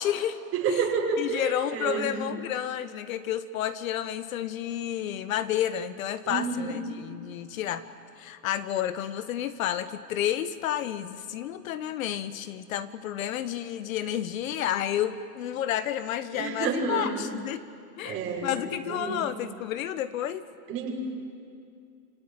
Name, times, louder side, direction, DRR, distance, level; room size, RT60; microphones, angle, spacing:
voice 1, 0.0-0.4 0.7-0.8 1.2-7.8 8.2-17.6 18.0-20.4, left 11 dB, 55° left, 13 dB, 1.2 m, -31 dB
voice 2, 0.5-2.1 6.2-6.8 16.3-17.2 18.0-19.2 20.7-20.9, right 5 dB, 30° right, -2 dB, 6.5 m, -29 dB
28.5 x 17.0 x 9.2 m, 2.4 s
hypercardioid pair, 135°, 47 cm